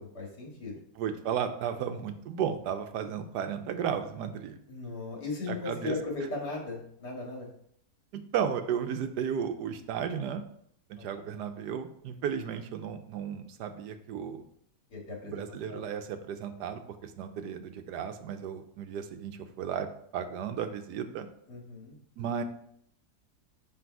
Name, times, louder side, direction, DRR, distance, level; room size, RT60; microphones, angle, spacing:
voice 1, 0.0-0.8 4.7-7.5 11.0-11.1 14.9-15.4 15.7-15.9 21.5-22.0, left 3 dB, 75° left, -1 dB, 2.5 m, -37 dB
voice 2, 1.0-4.6 5.5-6.0 8.1-10.4 11.0-14.4 15.2-19.9 20.1-21.3 22.2-22.4, right 8 dB, 85° right, 8 dB, 1.3 m, -34 dB
6.0 x 5.4 x 4.6 m, 0.68 s
omnidirectional pair, 1.8 m